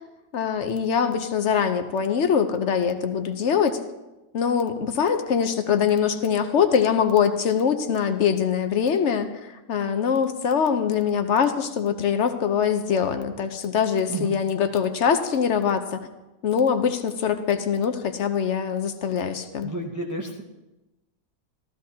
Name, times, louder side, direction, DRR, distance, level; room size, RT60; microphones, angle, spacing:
voice 1, 0.3-3.8 4.3-16.0 16.4-19.7, left 7 dB, 55° left, 8 dB, 1.0 m, -23 dB
voice 2, 19.6-20.4, right 1 dB, 20° right, -1 dB, 0.6 m, -31 dB
14.5 x 13.5 x 2.8 m, 1.0 s
omnidirectional pair, 1.6 m